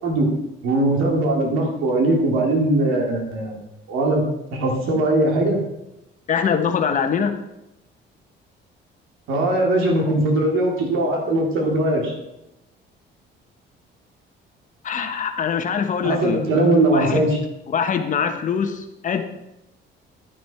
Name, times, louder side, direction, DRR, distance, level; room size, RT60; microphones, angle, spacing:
voice 1, 0.6-3.6 3.9-4.2 4.5-5.6 9.3-12.1 16.0-17.4, right 1 dB, 85° right, 0 dB, 3.3 m, -20 dB
voice 2, 6.3-7.3 14.8-16.4 16.9-17.2 17.7-19.2, left 7 dB, 40° left, 6 dB, 1.2 m, -23 dB
11.0 x 10.5 x 4.5 m, 0.87 s
cardioid pair, 150°, 20 cm